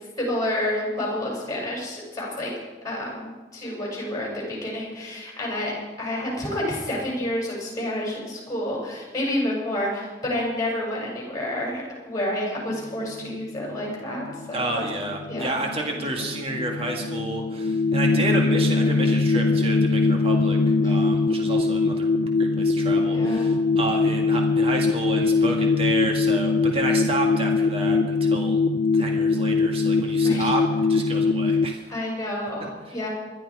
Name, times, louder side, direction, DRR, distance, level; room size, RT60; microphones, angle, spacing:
voice 1, 0.2-2.5 2.8-14.8 15.3-15.6 20.8-21.1 23.1-23.5 30.2-30.5 31.9-33.1, left 1 dB, 20° left, -3 dB, 6.9 m, -29 dB
sound 1, 12.7-31.7, left 3 dB, 70° left, 0.6 m, -22 dB
voice 2, 14.5-22.1 22.4-28.6 28.9-30.6 30.9-31.9, right 2 dB, 30° right, 1 dB, 2.0 m, -30 dB
21.0 x 13.0 x 5.0 m, 1.2 s
head